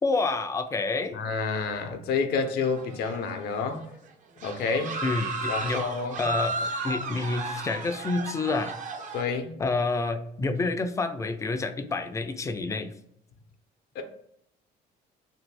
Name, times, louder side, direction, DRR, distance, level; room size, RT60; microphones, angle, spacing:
voice 1, 0.0-1.2 5.0-5.8 6.2-8.7 9.6-12.9, left 3 dB, 20° left, 8 dB, 0.3 m, -28 dB
voice 2, 1.1-3.8 4.4-5.0 5.5-6.3 9.1-9.6 14.0-14.1, left 5 dB, 70° left, 6 dB, 0.5 m, -29 dB
sound 1, 2.6-3.5 3.8-4.0 4.4-9.2, right 3 dB, 50° right, 0.5 m, -34 dB
2.7 x 2.6 x 3.2 m, 0.74 s
cardioid pair, 110°, 17 cm